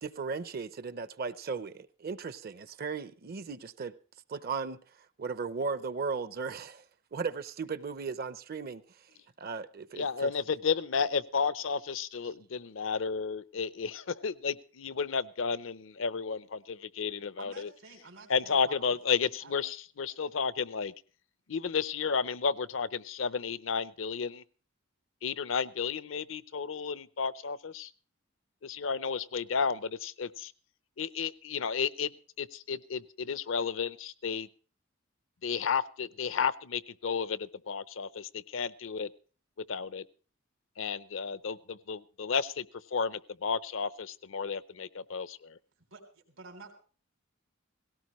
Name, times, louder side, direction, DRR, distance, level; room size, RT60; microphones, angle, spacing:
voice 1, 0.0-3.9 4.3-4.8 5.2-6.8 7.1-8.8 9.4-10.3, right 5 dB, 50° right, 0.6 m, -36 dB
voice 2, 10.0-17.7 18.3-20.9 21.5-24.4 25.2-27.9 28.6-30.5 31.0-32.1 32.4-34.5 35.4-39.1 39.7-40.0 40.8-42.7 42.9-45.6, left 6 dB, 70° left, 0.6 m, -32 dB
voice 3, 17.4-19.0 19.3-19.5 45.9-46.7, right 3 dB, 85° right, 3.5 m, -50 dB
18.0 x 17.0 x 3.1 m
head